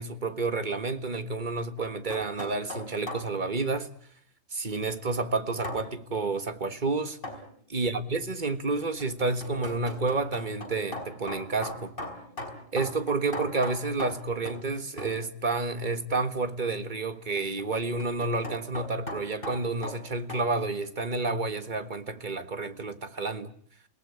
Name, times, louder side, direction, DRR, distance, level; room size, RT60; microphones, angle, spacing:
voice 1, 0.0-3.9 4.5-7.2 7.7-11.9 12.7-23.5, right 3 dB, 40° right, 1.6 m, -30 dB
sound 1, 1.8-3.3 5.6-5.9 7.2-7.5 8.8-14.7 15.0-15.2 17.4-20.5, left 1 dB, 45° left, 5.3 m, -39 dB
28.5 x 18.0 x 9.8 m
omnidirectional pair, 1.3 m